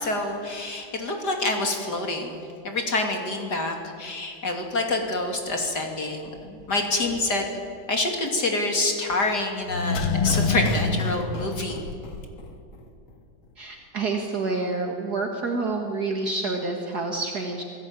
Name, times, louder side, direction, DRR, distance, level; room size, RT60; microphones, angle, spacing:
voice 1, 0.0-7.5 7.9-11.8, left 2 dB, 55° left, 3 dB, 3.4 m, -27 dB
sound 1, 9.6-12.5 12.8-12.9, left 3 dB, 85° left, 2.7 m, -26 dB
voice 2, 13.6-17.6, right 3 dB, 55° right, 1 dB, 2.3 m, -28 dB
27.5 x 17.0 x 9.1 m, 2.6 s
omnidirectional pair, 2.2 m